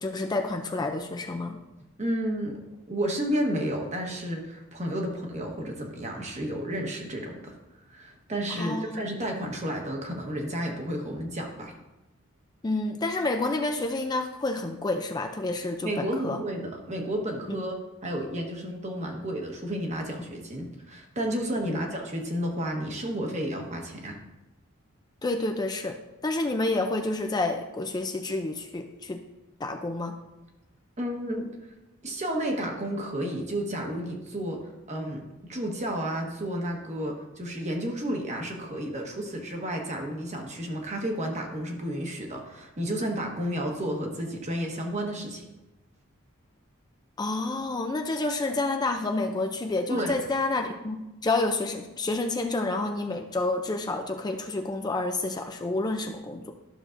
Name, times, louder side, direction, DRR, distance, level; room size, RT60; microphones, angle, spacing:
voice 1, 0.0-1.6 8.6-9.0 12.6-16.4 17.5-17.6 21.6-21.9 25.2-25.9 26.2-29.2 29.6-30.1 47.2-56.5, left 2 dB, 20° left, 5 dB, 0.4 m, -29 dB
voice 2, 2.0-2.6 2.9-7.6 7.9-11.7 15.8-17.7 18.0-24.2 31.0-31.5 32.0-34.6 34.9-35.2 35.5-45.4 49.9-50.2, right 1 dB, 35° right, 2 dB, 1.2 m, -31 dB
12.0 x 6.3 x 2.5 m, 1.0 s
head